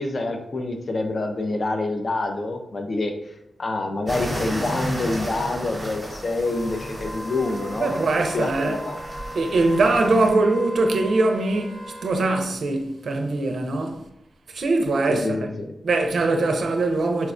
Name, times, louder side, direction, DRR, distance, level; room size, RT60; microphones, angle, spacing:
voice 1, 0.0-3.1 3.6-8.0 8.2-9.0 15.1-15.7, left 2 dB, 45° left, 0.4 m, -27 dB
sound 1, 4.1-10.3, right 1 dB, 15° right, 0.8 m, -33 dB
Wind instrument woodwind instrument, 6.4-12.5, equal, 70° left, 0.8 m, -38 dB
voice 2, 7.8-8.7 9.3-14.0 14.5-15.5 15.8-17.3, right 2 dB, 70° right, 0.4 m, -22 dB
4.2 x 2.1 x 2.4 m
wide cardioid pair, 150°, 0 cm